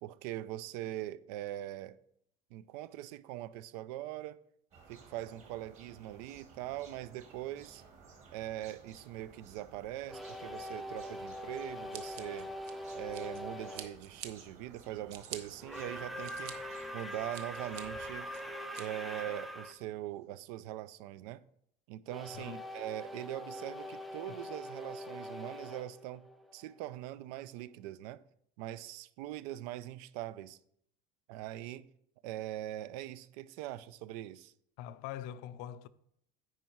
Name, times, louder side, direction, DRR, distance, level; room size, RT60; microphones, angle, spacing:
voice 1, 0.0-2.0 2.5-4.4 4.9-7.8 8.3-12.5 12.9-16.6 16.9-18.3 18.8-21.4 21.9-26.3 26.5-28.2 28.6-30.6 31.3-31.9 32.2-34.5, right 14 dB, 85° right, 0.5 m, -42 dB
sound 1, 4.7-19.8, right 4 dB, 35° right, 1.7 m, -58 dB
sound 2, 10.1-13.9 15.6-19.8 22.1-26.9, equal, ahead, 0.3 m, -43 dB
Scissors, 11.9-13.4 13.7-14.3 14.8-15.4 15.9-16.5 17.0-17.8 18.3-18.8, right 10 dB, 60° right, 0.9 m, -46 dB
voice 2, 22.3-22.7 34.8-35.9, left 11 dB, 60° left, 0.5 m, -43 dB
9.5 x 4.7 x 4.6 m
cardioid pair, 170°, 19 cm